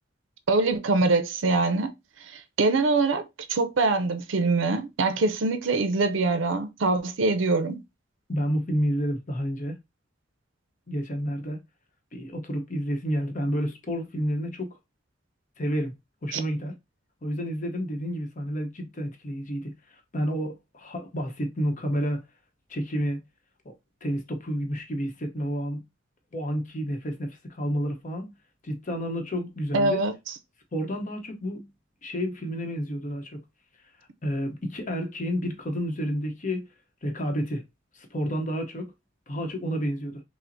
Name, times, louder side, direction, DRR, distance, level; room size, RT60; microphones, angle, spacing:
voice 1, 0.5-1.9 2.3-7.8 16.3-16.4 29.7-30.1, right 3 dB, 80° right, 0.5 m, -24 dB
voice 2, 8.3-9.8 10.9-11.6 12.1-14.8 15.6-16.0 16.2-16.8 17.2-22.2 22.7-23.2 23.6-23.7 24.0-25.8 26.3-28.3 28.6-30.1 30.7-31.7 32.0-33.4 34.2-36.7 37.0-37.6 37.9-38.9 39.3-40.2, equal, 40° left, 0.8 m, -30 dB
5.7 x 2.0 x 2.6 m
head